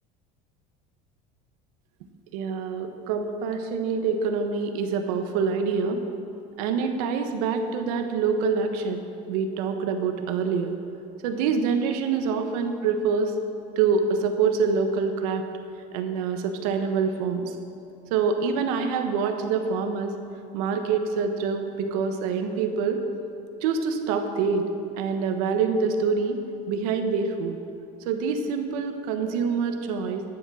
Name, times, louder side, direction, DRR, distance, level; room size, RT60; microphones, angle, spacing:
voice 1, 2.3-6.0 6.6-10.7 11.2-13.4 13.8-15.4 15.9-17.5 18.1-20.1 20.5-23.0 23.6-24.7 25.0-26.4 26.7-27.6 28.0-30.2, right 5 dB, 85° right, 6 dB, 1.1 m, -26 dB
11.5 x 7.2 x 6.3 m, 2.8 s
cardioid pair, 145°, 18 cm